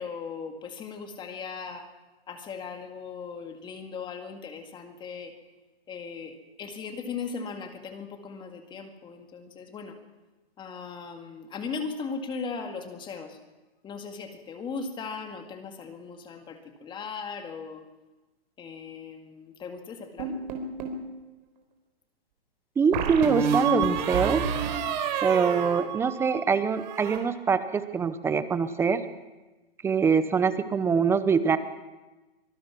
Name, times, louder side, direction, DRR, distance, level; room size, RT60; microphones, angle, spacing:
voice 1, 0.0-1.9 2.3-5.3 5.9-10.0 10.6-13.4 13.8-17.9 18.6-20.4, left 5 dB, 15° left, 6 dB, 2.1 m, -38 dB
sound 1, 20.2-21.0 22.9-26.4 26.7-27.2, right 6 dB, 45° right, 4.1 m, -29 dB
voice 2, 22.8-24.5 25.2-29.0 29.8-31.6, right 6 dB, 10° right, 13 dB, 0.7 m, -24 dB
25.0 x 19.5 x 6.1 m, 1.1 s
hypercardioid pair, 145°, 31 cm